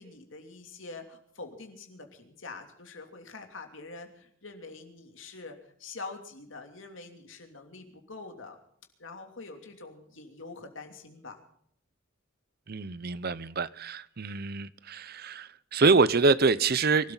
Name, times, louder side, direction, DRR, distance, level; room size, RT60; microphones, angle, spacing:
voice 1, 0.0-8.6 9.0-11.4, left 3 dB, 75° left, 2.9 m, -45 dB
voice 2, 12.7-17.1, right 4 dB, 50° right, 0.7 m, -25 dB
24.5 x 13.0 x 4.0 m
head